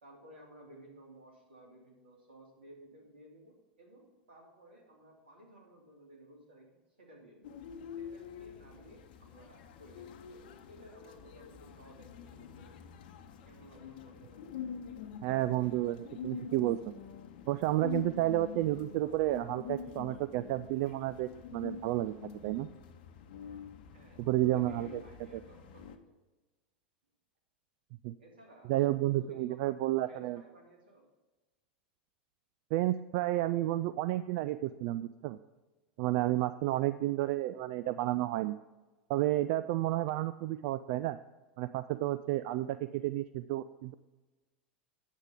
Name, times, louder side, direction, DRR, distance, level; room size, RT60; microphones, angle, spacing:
voice 1, 0.0-7.6 7.9-13.0 13.5-14.5 23.9-26.2 28.2-28.7 29.2-29.7 30.0-31.1, right 1 dB, 80° right, 0 dB, 2.7 m, -57 dB
sound 1, 7.4-26.0, left 7 dB, 65° left, 0.8 m, -46 dB
voice 2, 15.2-16.8 17.5-22.1 22.4-22.7 24.3-25.0 25.3-25.4 28.0-28.1 28.7-30.4 32.7-35.4 36.0-38.6 39.1-41.2 41.6-43.9, right 15 dB, 55° right, 13 dB, 0.3 m, -31 dB
9.2 x 8.1 x 4.9 m, 1.2 s
hypercardioid pair, 90°, 5 cm